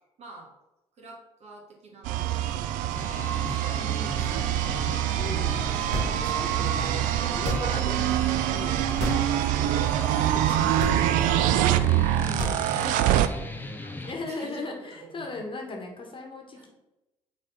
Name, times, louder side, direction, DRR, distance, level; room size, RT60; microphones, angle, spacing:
voice 1, 0.2-0.5 1.0-4.8 10.0-11.7 12.8-15.4 16.5-16.7, right 5 dB, 50° right, -1 dB, 1.9 m, -46 dB
sound 1, 2.1-13.3, right 12 dB, 65° right, 0.4 m, -25 dB
sound 2, 3.0-14.1, left 2 dB, 15° left, 0.8 m, -38 dB
voice 2, 3.6-4.2 5.1-9.7 10.6-10.9 11.8-12.4 12.8-12.9 13.3-13.4 14.1-16.7, left 3 dB, 35° left, 1 dB, 1.6 m, -39 dB
sound 3, 5.9-6.5 7.3-7.9 8.9-9.3 9.7-9.8 10.7-11.4 12.2-12.9, right 1 dB, 85° right, 1.5 m, -31 dB
6.3 x 4.0 x 4.1 m, 0.96 s
hypercardioid pair, 50°, 14 cm